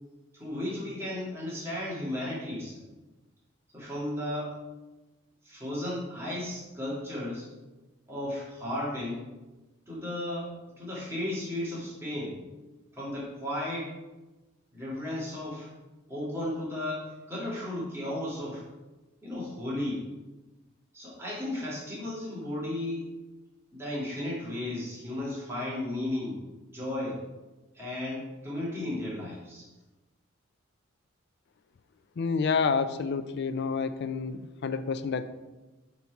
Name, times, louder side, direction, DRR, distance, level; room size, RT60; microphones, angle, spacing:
voice 1, 0.3-2.8 3.7-4.6 5.4-7.5 8.1-9.2 9.9-12.4 12.9-13.9 14.7-15.7 16.1-18.6 19.2-20.0 20.9-23.0 23.7-26.4 26.7-27.2 27.7-29.7, left 1 dB, 10° right, -8 dB, 2.0 m, -34 dB
voice 2, 32.2-35.2, left 5 dB, 55° left, 11 dB, 0.4 m, -29 dB
5.9 x 4.1 x 4.6 m, 1.1 s
head